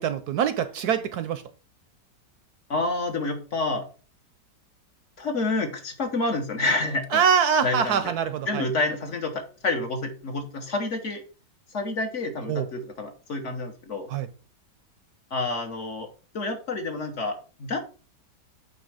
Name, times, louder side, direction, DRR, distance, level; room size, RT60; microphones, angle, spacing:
voice 1, 0.0-1.4 7.1-8.7 12.5-12.6 14.1-14.3, right 7 dB, 70° right, 11 dB, 1.0 m, -24 dB
voice 2, 2.7-3.8 5.2-7.2 7.6-8.1 8.5-11.2 11.7-14.1 15.3-16.1 16.3-17.8, left 2 dB, 45° left, 4 dB, 1.3 m, -28 dB
8.8 x 3.1 x 4.9 m, 0.36 s
omnidirectional pair, 1.9 m